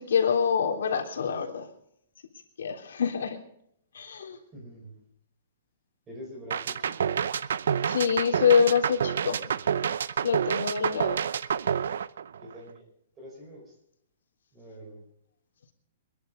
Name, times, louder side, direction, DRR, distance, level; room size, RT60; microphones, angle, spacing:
voice 1, 0.0-1.7 2.6-3.4 3.9-4.4 7.8-9.4 10.2-11.2, left 6 dB, 85° left, 1 dB, 3.4 m, -25 dB
voice 2, 4.5-5.0 6.1-7.2 12.4-12.8 13.2-13.7 14.5-15.0, equal, 10° right, 0 dB, 4.8 m, -45 dB
sound 1, 6.5-12.7, right 8 dB, 75° right, 0.6 m, -28 dB
23.5 x 11.0 x 5.2 m, 0.75 s
hypercardioid pair, 175°, 0 cm